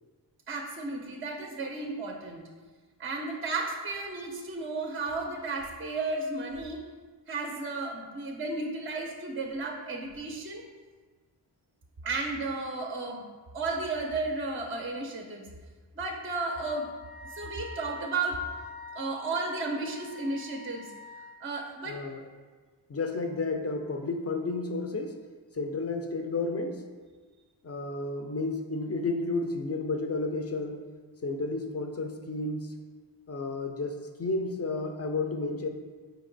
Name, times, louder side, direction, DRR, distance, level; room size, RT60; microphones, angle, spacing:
voice 1, 0.5-2.5 3.0-6.8 7.3-10.6 12.0-13.2 13.5-15.5 16.0-16.9 17.3-18.4 18.9-20.9 21.4-22.0, right 3 dB, 30° right, 1 dB, 0.5 m, -33 dB
Wind instrument woodwind instrument, 16.4-21.4, left 3 dB, 90° left, 0.6 m, -45 dB
voice 2, 21.9-22.2 22.9-25.1 25.5-26.8 27.6-30.8 31.2-32.7 33.3-35.7, left 3 dB, 35° left, 4 dB, 0.5 m, -32 dB
4.3 x 2.9 x 3.8 m, 1.4 s
wide cardioid pair, 55°, 46 cm